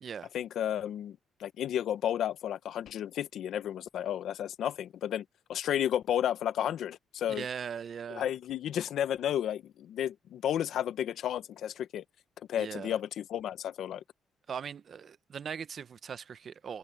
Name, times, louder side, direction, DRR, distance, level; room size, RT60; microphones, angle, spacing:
voice 1, 0.3-7.5 8.1-12.0 12.5-14.0, left 10 dB, 75° left, 1.0 m, -32 dB
voice 2, 7.3-8.2 12.6-12.9 14.5-16.8, right 7 dB, 50° right, 0.9 m, -39 dB
cardioid pair, 90°, 0 cm